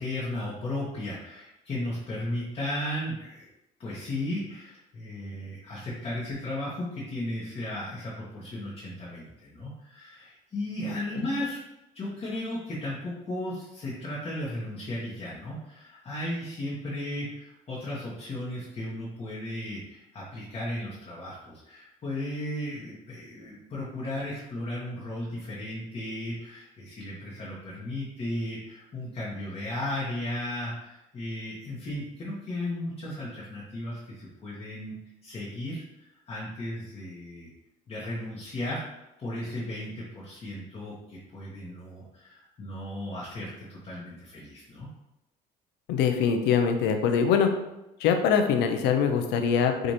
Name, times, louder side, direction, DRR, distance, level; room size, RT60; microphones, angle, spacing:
voice 1, 0.0-3.5 3.8-11.6 11.9-35.0 35.2-37.5 37.9-44.9, left 1 dB, 35° left, -6 dB, 1.0 m, -35 dB
voice 2, 45.9-47.5 48.0-49.9, left 7 dB, 90° left, 6 dB, 0.5 m, -23 dB
4.7 x 2.5 x 2.7 m, 0.93 s
cardioid pair, 110°, 17 cm